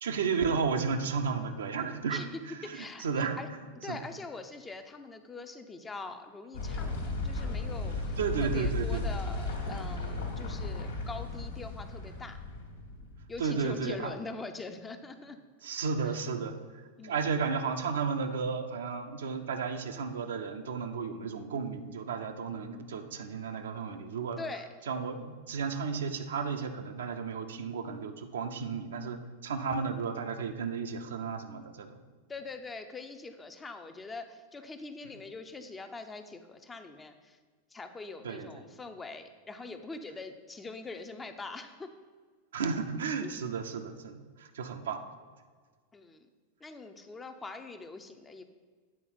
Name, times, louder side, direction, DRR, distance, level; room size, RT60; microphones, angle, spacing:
voice 1, 0.0-2.2 2.5-3.4 3.9-4.0 8.2-9.0 13.4-14.1 15.6-16.5 17.0-24.4 24.9-32.0 38.2-38.6 42.5-45.0, right 5 dB, 65° right, 6 dB, 0.6 m, -33 dB
voice 2, 2.1-3.5 3.8-12.4 13.3-15.4 16.0-16.2 17.0-17.2 24.4-24.7 32.3-37.4 37.7-41.9 43.2-43.3 45.9-46.3 46.6-48.4, left 3 dB, 15° left, 7 dB, 0.5 m, -43 dB
sound 1, 6.5-13.9, left 2 dB, 70° left, 1.4 m, -35 dB
8.6 x 4.1 x 5.6 m, 1.5 s
figure-of-eight pair, 90°, 0 cm